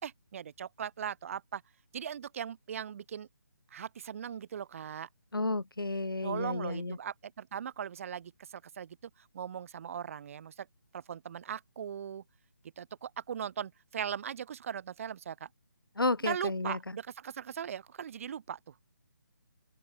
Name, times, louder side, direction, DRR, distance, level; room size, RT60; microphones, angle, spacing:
voice 1, 0.0-1.6 1.9-3.3 3.7-5.1 6.2-10.7 10.9-12.2 12.8-15.5 16.2-18.7, right 8 dB, 40° right, 4.1 m, -39 dB
voice 2, 5.3-7.0 16.0-16.8, left 2 dB, 85° left, 1.8 m, -32 dB
open air
figure-of-eight pair, 150°, 11 cm